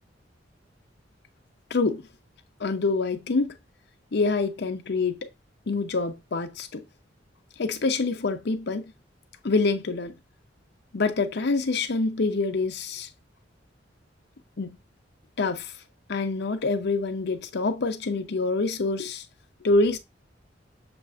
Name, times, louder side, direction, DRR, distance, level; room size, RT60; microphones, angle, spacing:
voice 1, 1.7-2.0 2.6-3.6 4.1-5.2 5.7-6.8 7.6-8.8 9.4-10.2 10.9-13.1 14.6-14.8 15.4-15.7 16.1-19.2 19.6-20.0, left 3 dB, 65° left, 0.6 m, -26 dB
6.8 x 2.4 x 2.4 m
head